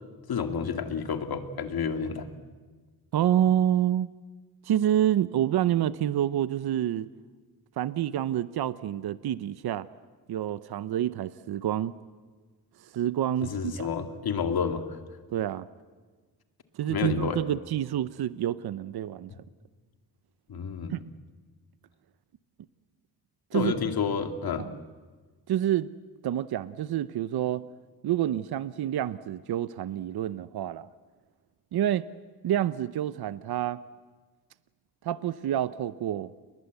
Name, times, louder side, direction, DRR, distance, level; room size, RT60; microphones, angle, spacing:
voice 1, 0.3-2.3 13.4-15.0 16.9-17.4 19.3-19.4 20.5-21.0 23.5-24.7, left 6 dB, 70° left, 7 dB, 2.3 m, -30 dB
voice 2, 3.1-4.1 4.6-7.1 7.8-9.9 10.3-11.9 12.8-13.9 15.3-15.7 16.7-19.3 20.9-21.0 23.5-23.7 24.6-24.8 25.5-25.9 26.2-27.7 28.0-30.9 31.7-32.1 32.4-33.8 35.0-36.3, right 11 dB, 75° right, 15 dB, 0.7 m, -28 dB
29.5 x 22.0 x 8.2 m, 1.4 s
wide cardioid pair, 125°, 38 cm